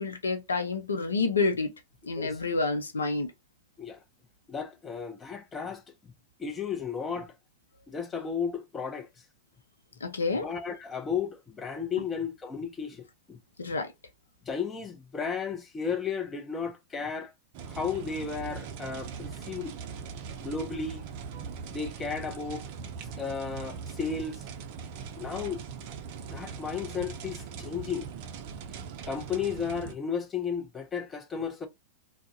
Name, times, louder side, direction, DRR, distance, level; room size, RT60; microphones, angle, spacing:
voice 1, 0.0-1.7 2.1-3.3 10.0-10.5 13.6-13.9, left 3 dB, 85° left, 0.5 m, -28 dB
voice 2, 4.5-6.1 6.4-7.3 7.9-9.1 10.3-13.4 14.4-17.3 17.7-19.7 20.4-21.0 21.7-22.7 23.2-24.4 25.2-25.9 26.3-28.1 29.1-31.7, left 6 dB, 20° left, 0.6 m, -34 dB
sound 1, 17.5-30.0, right 6 dB, 50° right, 0.4 m, -41 dB
2.3 x 2.0 x 2.6 m
hypercardioid pair, 105°, 0 cm